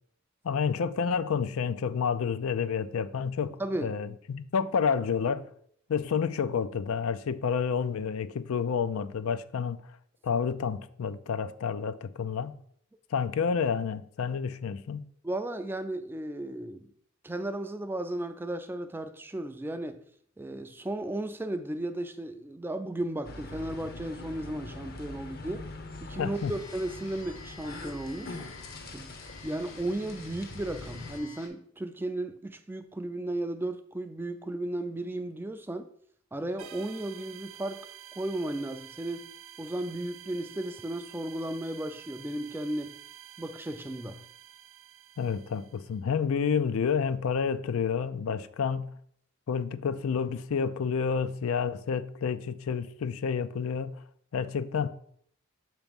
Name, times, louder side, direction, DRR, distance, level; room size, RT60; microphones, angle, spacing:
voice 1, 0.4-5.5 5.9-9.8 10.2-12.5 13.1-15.0 26.2-26.5 45.2-48.9 49.5-54.0 54.3-54.9, left 6 dB, 85° left, 0.4 m, -29 dB
voice 2, 3.6-4.0 15.2-16.9 17.2-20.0 20.4-25.7 26.0-28.4 28.9-29.1 29.4-35.9 36.3-37.9 38.2-39.3 39.6-43.0 43.4-44.2, right 1 dB, 10° right, 0.3 m, -35 dB
sound 1, 23.2-31.2, left 2 dB, 45° left, 0.7 m, -43 dB
sound 2, 26.3-31.5, left 4 dB, 65° left, 1.4 m, -50 dB
sound 3, 36.6-46.0, right 11 dB, 85° right, 0.6 m, -49 dB
7.0 x 3.0 x 5.2 m
head